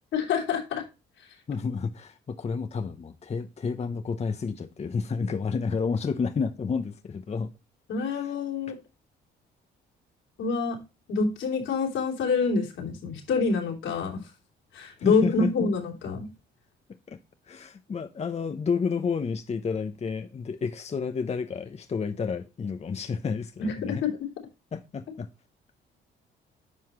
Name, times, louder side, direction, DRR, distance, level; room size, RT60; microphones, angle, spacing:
voice 1, 0.1-0.8 7.9-8.8 10.4-10.8 11.1-14.3 14.7-16.3 23.6-24.2, left 4 dB, 80° left, 3.4 m, -27 dB
voice 2, 1.5-7.5 8.1-8.3 15.0-15.5 17.1-17.2 17.5-24.0 24.7-25.3, left 5 dB, 35° left, 0.8 m, -30 dB
9.6 x 5.6 x 3.0 m
cardioid pair, 90°, 20 cm